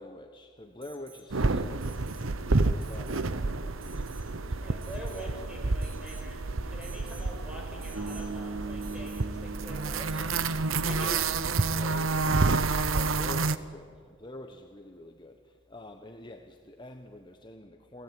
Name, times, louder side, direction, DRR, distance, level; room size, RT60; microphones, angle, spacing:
voice 1, 0.0-2.4 2.6-4.8 10.8-11.3 11.6-12.5 12.9-18.0, left 1 dB, 25° left, 5 dB, 1.2 m, -47 dB
Alarm, 0.8-1.3 1.8-2.3 2.8-3.3 3.8-4.3 4.8-5.3 5.8-6.3 6.8-7.3 7.8-8.3 8.8-9.3 9.8-10.3 12.0-12.1, right 5 dB, 45° right, 2.6 m, -52 dB
sound 1, 1.3-13.6, right 3 dB, 90° right, 1.0 m, -29 dB
voice 2, 4.6-10.4 10.6-11.2 11.8-12.2, equal, 5° right, -1 dB, 7.5 m, -44 dB
Bass guitar, 8.0-12.0, right 3 dB, 65° right, 3.3 m, -41 dB
29.0 x 19.0 x 9.4 m, 2.1 s
head